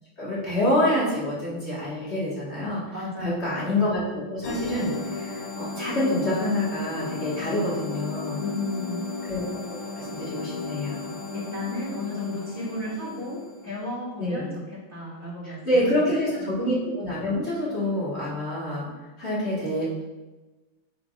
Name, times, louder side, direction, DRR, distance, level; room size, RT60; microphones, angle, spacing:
voice 1, 0.2-2.8 3.2-8.4 9.3-9.4 9.9-11.0 14.2-14.5 15.4-18.9 19.2-20.1, left 1 dB, 30° left, -8 dB, 1.8 m, -27 dB
voice 2, 2.9-3.6 8.4-9.1 11.3-16.0, left 2 dB, 5° right, -8 dB, 1.9 m, -34 dB
sound 1, 4.4-13.8, left 3 dB, 85° left, 1.9 m, -34 dB
8.5 x 5.0 x 2.5 m, 1.2 s
omnidirectional pair, 2.4 m